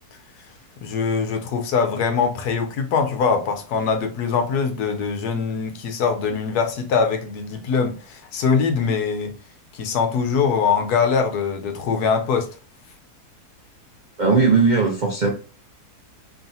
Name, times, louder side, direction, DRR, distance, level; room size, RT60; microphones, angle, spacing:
voice 1, 0.8-9.4 9.7-12.5, left 5 dB, 75° left, 1.3 m, -22 dB
voice 2, 14.2-15.3, right 4 dB, 55° right, 0.5 m, -18 dB
4.5 x 3.1 x 2.7 m
omnidirectional pair, 1.7 m